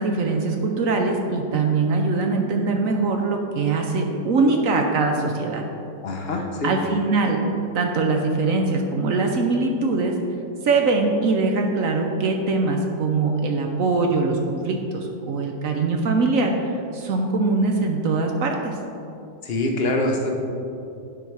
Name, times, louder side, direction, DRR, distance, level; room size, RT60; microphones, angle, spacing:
voice 1, 0.0-5.6 6.6-7.4 7.7-10.1 10.6-18.8, right 3 dB, 65° right, 3 dB, 0.9 m, -22 dB
voice 2, 6.0-6.7 19.4-20.3, left 2 dB, 55° left, 2 dB, 0.7 m, -24 dB
8.2 x 5.6 x 4.6 m, 2.7 s
omnidirectional pair, 1.9 m